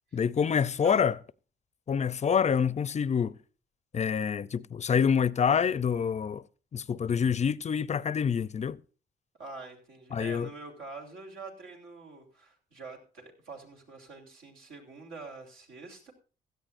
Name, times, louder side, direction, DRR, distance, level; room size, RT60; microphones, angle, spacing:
voice 1, 0.1-1.2 1.9-3.3 3.9-6.4 6.7-8.8 10.1-10.5, left 7 dB, 35° left, 0.6 m, -26 dB
voice 2, 9.4-16.1, right 3 dB, 80° right, 3.5 m, -45 dB
16.5 x 13.5 x 2.6 m
cardioid pair, 90°, 20 cm